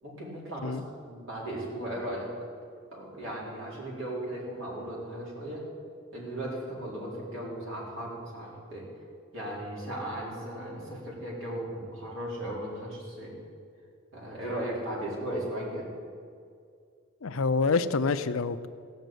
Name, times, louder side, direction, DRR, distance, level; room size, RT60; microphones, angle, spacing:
voice 1, 0.0-0.8 1.0-2.3 2.9-5.6 6.1-8.8 9.3-13.3 14.1-15.9, right 1 dB, 65° right, -5 dB, 4.7 m, -36 dB
voice 2, 17.2-18.7, left 4 dB, 75° left, 12 dB, 0.6 m, -27 dB
15.5 x 6.6 x 9.2 m, 2.2 s
head